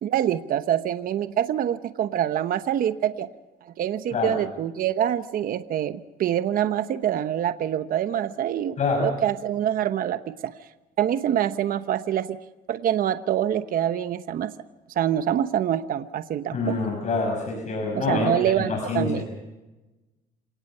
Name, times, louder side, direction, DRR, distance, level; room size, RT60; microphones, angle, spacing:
voice 1, 0.0-3.3 3.8-10.5 11.0-12.4 12.7-14.5 14.9-16.8 17.9-19.2, right 10 dB, 55° right, 11 dB, 1.0 m, -25 dB
voice 2, 8.8-9.1 16.5-18.3 18.6-19.3, left 3 dB, 45° left, 2 dB, 5.9 m, -26 dB
28.0 x 18.5 x 5.6 m, 1.1 s
cardioid pair, 110°, 17 cm